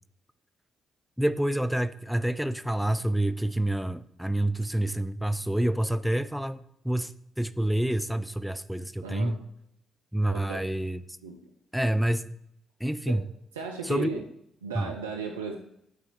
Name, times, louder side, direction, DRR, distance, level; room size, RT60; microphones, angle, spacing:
voice 1, 1.2-7.1 7.4-9.4 10.1-11.0 11.7-12.3 12.8-13.2 13.8-14.1 14.7-14.9, right 1 dB, ahead, 13 dB, 0.4 m, -27 dB
voice 2, 9.0-9.4 10.3-10.7 11.2-11.4 13.1-13.2 13.5-14.2 14.6-15.6, right 5 dB, 90° right, 3 dB, 0.4 m, -36 dB
5.6 x 4.0 x 6.1 m, 0.76 s
hypercardioid pair, 40°, 0 cm